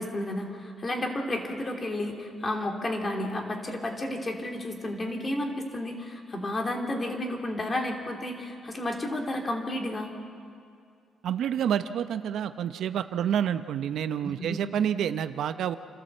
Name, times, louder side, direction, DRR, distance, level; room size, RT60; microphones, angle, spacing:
voice 1, 0.0-10.1 14.2-14.6, left 1 dB, 30° left, 2 dB, 3.2 m, -32 dB
voice 2, 11.2-15.8, right 9 dB, 70° right, 11 dB, 0.7 m, -28 dB
29.0 x 13.0 x 7.7 m, 2.3 s
cardioid pair, 90°, 0 cm